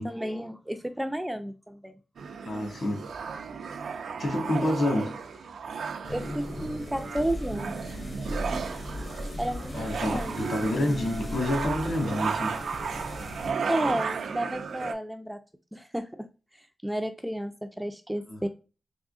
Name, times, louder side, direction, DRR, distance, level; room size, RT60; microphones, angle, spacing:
voice 1, 0.0-1.9 6.1-7.9 9.4-9.7 10.1-10.4 10.8-11.1 13.7-15.4 15.7-16.3 16.8-18.5, right 1 dB, 5° right, 0.3 m, -32 dB
sound 1, 2.2-14.9, right 6 dB, 85° right, 0.4 m, -35 dB
voice 2, 2.4-3.1 4.2-5.4 9.7-12.6 18.3-18.4, left 1 dB, 55° left, 1.3 m, -28 dB
sound 2, 6.0-13.5, left 1 dB, 35° left, 0.7 m, -38 dB
3.6 x 3.3 x 2.3 m
wide cardioid pair, 130°, 0 cm